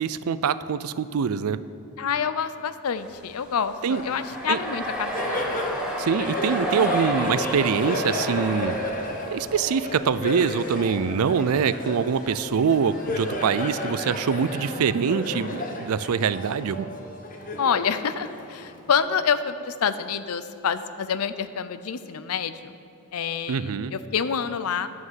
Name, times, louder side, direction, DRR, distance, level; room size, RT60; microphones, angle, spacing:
voice 1, 0.0-1.6 3.8-4.0 4.5-4.6 6.0-8.7 9.3-16.9 23.5-23.9, right 6 dB, 85° right, 15 dB, 0.4 m, -24 dB
voice 2, 2.0-5.2 17.6-22.7 23.1-24.9, left 7 dB, 85° left, 13 dB, 0.5 m, -27 dB
sound 1, 3.0-9.7 9.9-10.6 10.9-11.0 11.4-11.6 12.2-13.5, right 1 dB, 5° right, 1.0 m, -33 dB
Laughter, 3.9-18.9, left 1 dB, 40° left, 1.1 m, -32 dB
11.0 x 6.3 x 7.4 m, 2.8 s
head